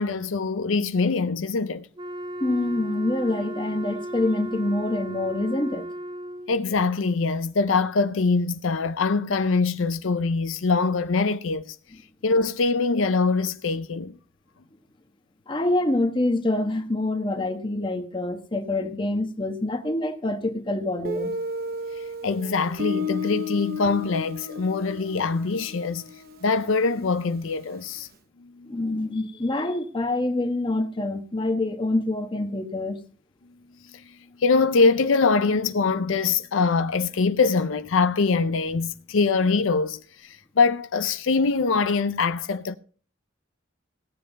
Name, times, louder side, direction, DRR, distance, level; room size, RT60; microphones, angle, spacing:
voice 1, 0.0-1.9 6.5-11.8 12.2-14.1 22.0-26.0 26.4-28.1 28.4-28.8 33.9-34.0 34.4-42.8, left 4 dB, 80° left, 0.6 m, -23 dB
Wind instrument woodwind instrument, 2.0-6.6, right 1 dB, 25° right, 0.8 m, -35 dB
voice 2, 2.4-5.9 15.5-21.3 28.6-33.0, left 2 dB, 25° left, 1.3 m, -26 dB
Guitar, 21.0-27.7, left 3 dB, 50° right, 1.0 m, -33 dB
17.5 x 7.6 x 4.0 m
head